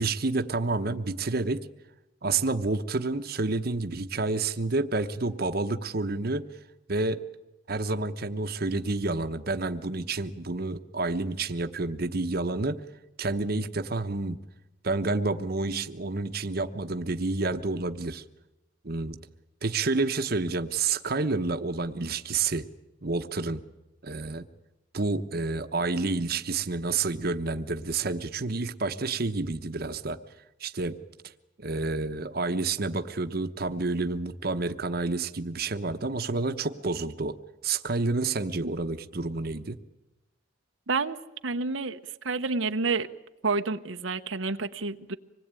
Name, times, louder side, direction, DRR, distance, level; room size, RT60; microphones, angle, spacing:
voice 1, 0.0-1.7 2.2-6.5 6.9-7.2 7.7-12.8 13.2-14.4 14.8-18.2 18.8-19.2 19.6-22.6 23.0-23.6 24.0-24.4 24.9-30.2 30.6-31.0 31.6-37.4 37.6-39.8, right 3 dB, 50° right, 1.0 m, -29 dB
voice 2, 40.9-41.2 41.4-42.0 42.2-43.1 43.4-45.2, right 4 dB, 90° right, 1.0 m, -29 dB
26.0 x 20.0 x 9.0 m
head